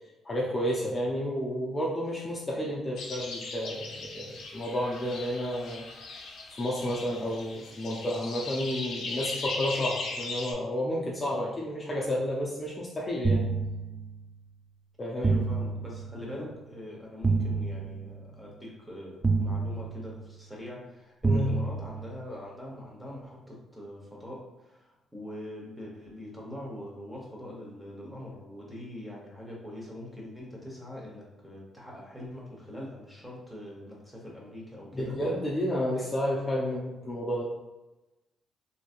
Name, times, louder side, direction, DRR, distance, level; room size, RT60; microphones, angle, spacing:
voice 1, 0.2-5.9 6.6-13.5 15.0-15.3 21.2-21.6 34.9-37.4, equal, 30° left, -4 dB, 0.5 m, -31 dB
sound 1, 3.0-10.5, left 3 dB, 75° left, 0.6 m, -38 dB
sound 2, 13.2-14.4 15.2-16.4 17.2-18.4 19.2-20.4 21.2-22.4, right 3 dB, 20° right, 0.4 m, -29 dB
voice 2, 15.2-35.1 35.9-36.1, left 1 dB, 5° right, -3 dB, 1.0 m, -43 dB
3.1 x 2.7 x 2.4 m, 1.1 s
cardioid pair, 90°, 0 cm